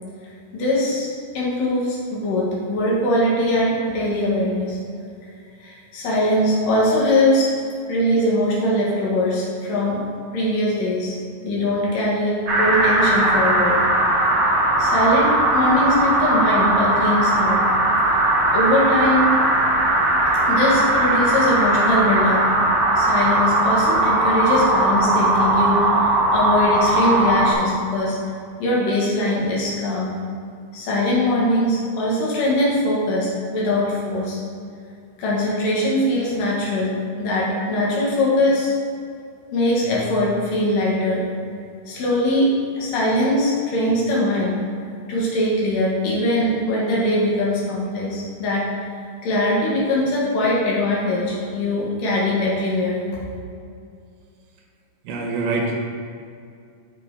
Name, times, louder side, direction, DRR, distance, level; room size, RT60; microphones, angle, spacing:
voice 1, 0.5-4.8 5.6-7.5 7.9-10.0 10.3-11.1 11.4-13.8 14.8-17.6 18.5-19.3 20.4-22.4 23.0-28.2 28.6-30.2 30.7-34.4 35.2-38.7 39.5-41.2 41.9-44.6 45.1-48.7 49.2-53.0, left 1 dB, 85° left, -5 dB, 3.2 m, -21 dB
sound 1, 12.5-27.5, right 1 dB, 50° right, 1.4 m, -19 dB
voice 2, 55.0-55.8, right 3 dB, 75° right, -1 dB, 2.5 m, -24 dB
7.2 x 6.6 x 3.6 m, 2.4 s
omnidirectional pair, 3.8 m